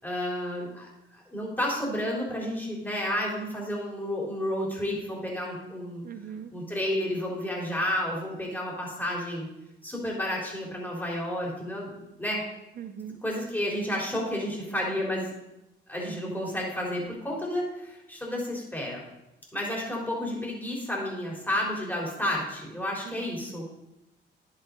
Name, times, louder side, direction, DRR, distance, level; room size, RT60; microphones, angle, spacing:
voice 1, 0.0-6.0 6.5-9.5 9.8-12.4 13.2-15.3 15.9-19.0 19.5-23.7, left 1 dB, 10° left, -3 dB, 3.6 m, -31 dB
voice 2, 6.0-6.5 12.8-13.2 16.0-16.4 23.0-23.5, right 7 dB, 45° right, 10 dB, 0.8 m, -41 dB
10.5 x 8.4 x 3.9 m, 0.92 s
cardioid pair, 90°, 20 cm